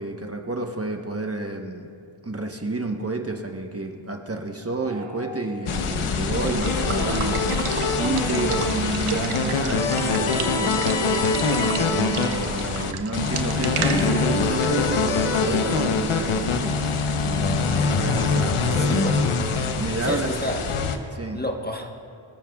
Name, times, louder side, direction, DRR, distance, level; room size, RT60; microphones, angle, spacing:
voice 1, 0.0-1.9 2.2-10.7 11.9-17.7 18.0-19.1 19.8-20.3 21.1-21.4, right 2 dB, 30° right, 2 dB, 1.1 m, -30 dB
sound 1, 4.7-9.4, equal, 55° right, 4.2 m, -45 dB
sound 2, 5.7-21.0, left 4 dB, 80° left, 0.9 m, -24 dB
Water / Water tap faucet / Liquid, 6.1-15.8, right 7 dB, 90° right, 0.9 m, -33 dB
voice 2, 13.8-14.1 18.8-19.2 20.0-20.8 21.3-21.9, left 1 dB, 20° left, 3 dB, 1.1 m, -29 dB
28.5 x 13.0 x 2.4 m, 2.5 s
wide cardioid pair, 70°, 50 cm